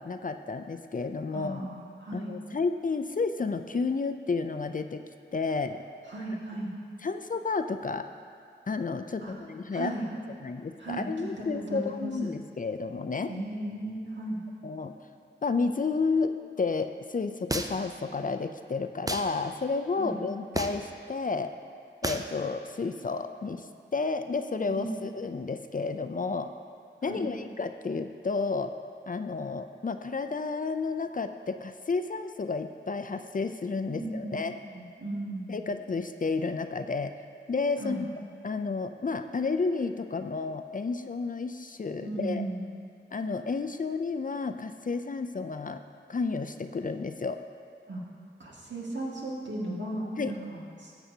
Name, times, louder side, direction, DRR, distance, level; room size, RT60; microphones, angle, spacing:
voice 1, 0.0-1.6 2.1-5.0 5.3-5.8 7.0-8.1 8.7-9.9 10.4-13.3 14.6-14.9 15.4-21.5 22.0-23.7 23.9-26.5 27.0-28.7 29.1-34.5 35.5-37.1 37.5-38.1 38.4-42.5 43.1-45.8 46.1-47.4 50.2-50.3, left 4 dB, 45° left, 8 dB, 0.4 m, -31 dB
voice 2, 1.3-2.3 6.1-6.7 9.2-9.3 9.7-10.1 10.8-12.1 13.3-14.4 20.0-20.2 24.7-25.0 27.0-27.2 33.9-35.6 37.8-38.0 42.0-42.8 47.9-48.0 48.4-50.9, right 1 dB, 70° right, -5 dB, 2.0 m, -36 dB
sound 1, 17.5-17.9 19.1-19.3 20.5-20.9 22.0-22.3, right 1 dB, 20° right, 0.5 m, -31 dB
13.5 x 7.9 x 2.8 m, 2.3 s
wide cardioid pair, 55°, 20 cm